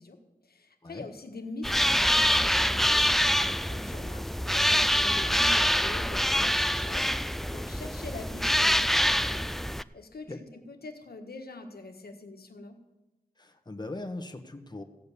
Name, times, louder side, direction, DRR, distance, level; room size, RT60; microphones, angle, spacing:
voice 1, 0.0-9.5 9.9-12.8, left 2 dB, 80° left, 5 dB, 1.4 m, -44 dB
sound 1, 1.6-9.8, equal, ahead, 0.4 m, -25 dB
voice 2, 13.4-14.8, left 2 dB, 25° left, 6 dB, 1.3 m, -39 dB
15.5 x 5.2 x 8.3 m, 1.0 s
cardioid pair, 45°, 16 cm